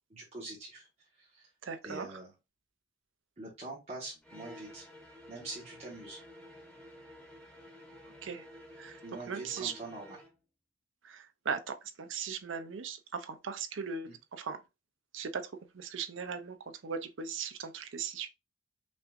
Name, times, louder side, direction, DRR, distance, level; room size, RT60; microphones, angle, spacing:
voice 1, 0.1-0.9 1.2-1.5 1.8-2.3 3.4-4.8 5.3-6.2 9.0-10.2 14.1-14.2, right 2 dB, 35° right, 1.3 m, -44 dB
voice 2, 1.6-2.1 8.2-8.4 8.8-9.0 9.3-9.7 11.0-14.6 15.1-18.3, right 6 dB, 85° right, 0.6 m, -38 dB
sound 1, 4.2-10.4, left 1 dB, 5° left, 1.1 m, -52 dB
5.4 x 2.6 x 2.6 m
head